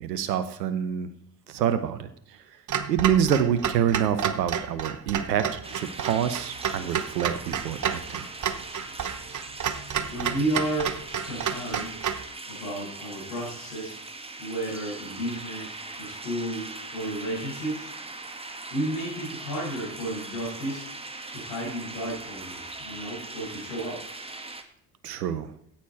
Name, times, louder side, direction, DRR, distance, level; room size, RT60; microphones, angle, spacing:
voice 1, 0.0-1.1 1.5-2.4 2.9-8.3 25.0-25.5, right 9 dB, 90° right, 12 dB, 0.8 m, -27 dB
Clock, 2.7-12.3, right 8 dB, 40° right, 1.0 m, -31 dB
sound 1, 5.6-24.6, right 2 dB, 10° right, 1.3 m, -40 dB
voice 2, 10.1-12.0 12.5-13.9 14.4-17.9 18.7-20.8 21.3-24.0, right 1 dB, 80° left, -10 dB, 6.2 m, -32 dB
13.5 x 8.8 x 4.5 m, 0.67 s
hypercardioid pair, 55°, 47 cm